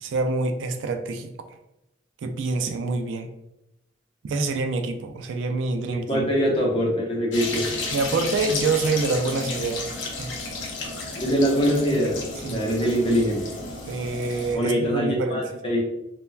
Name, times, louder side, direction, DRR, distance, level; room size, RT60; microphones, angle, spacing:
voice 1, 0.0-1.5 2.2-3.3 4.2-6.3 7.9-10.3 12.4-12.6 13.9-15.4, right 3 dB, 75° right, 6 dB, 0.3 m, -26 dB
voice 2, 5.9-7.8 11.1-13.4 14.5-15.8, equal, 30° left, -1 dB, 0.6 m, -23 dB
sound 1, 7.3-14.6, left 3 dB, 70° left, 0.5 m, -32 dB
3.2 x 2.1 x 2.3 m, 0.88 s
head